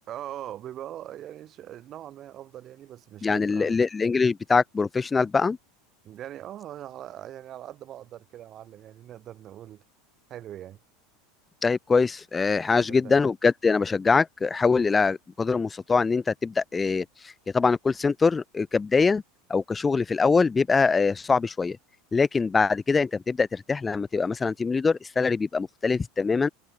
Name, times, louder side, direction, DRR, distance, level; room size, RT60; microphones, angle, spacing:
voice 1, 0.1-3.8 6.0-9.8 10.3-10.8 12.7-13.2, right 12 dB, 40° right, 5.2 m, -41 dB
voice 2, 3.2-5.6 11.6-19.2 19.5-21.8 22.1-26.5, left 4 dB, 20° left, 0.6 m, -23 dB
hypercardioid pair, 95°, 0 cm